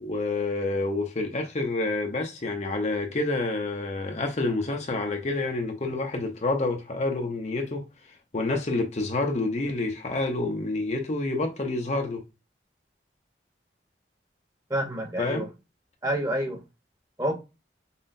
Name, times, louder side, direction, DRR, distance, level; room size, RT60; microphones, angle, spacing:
voice 1, 0.0-7.9 8.3-12.2 15.2-15.4, left 2 dB, 40° left, 0.6 m, -28 dB
voice 2, 14.7-15.5 16.0-16.6 17.2-17.3, right 1 dB, 20° right, 1.0 m, -28 dB
5.6 x 2.2 x 2.6 m
head